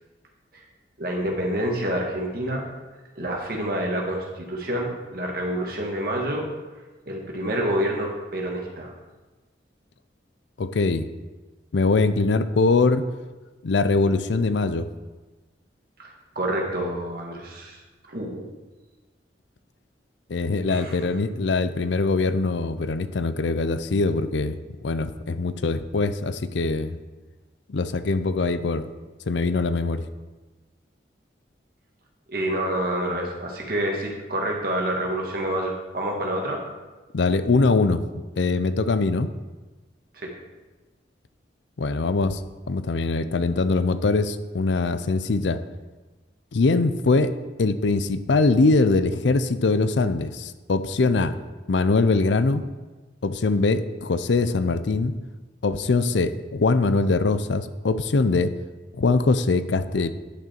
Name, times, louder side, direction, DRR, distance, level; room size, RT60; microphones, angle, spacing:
voice 1, 1.0-2.6 3.1-6.4 7.0-8.9 16.0-17.8 18.1-18.5 20.7-21.0 32.3-36.6 40.1-40.3, right 1 dB, 55° right, 0 dB, 1.7 m, -28 dB
voice 2, 10.6-11.1 11.7-13.0 13.6-14.9 20.3-24.6 24.8-27.0 27.7-28.9 29.3-30.0 37.1-38.0 38.4-39.3 41.8-42.4 42.7-45.6 46.5-47.3 47.6-51.4 51.7-52.6 53.2-55.1 55.6-58.5 59.0-60.1, left 3 dB, 80° left, 12 dB, 0.5 m, -22 dB
10.0 x 6.1 x 4.4 m, 1.2 s
head